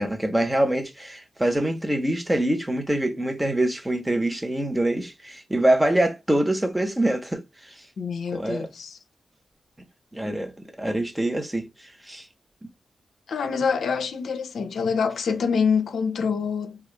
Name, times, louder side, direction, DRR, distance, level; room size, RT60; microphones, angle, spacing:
voice 1, 0.0-7.4 8.3-8.7 10.1-11.7 12.1-12.2, right 1 dB, 15° right, 1.0 m, -24 dB
voice 2, 8.0-9.0 13.3-16.8, left 6 dB, 80° left, 0.5 m, -26 dB
3.1 x 2.3 x 3.1 m
supercardioid pair, 40°, 0 cm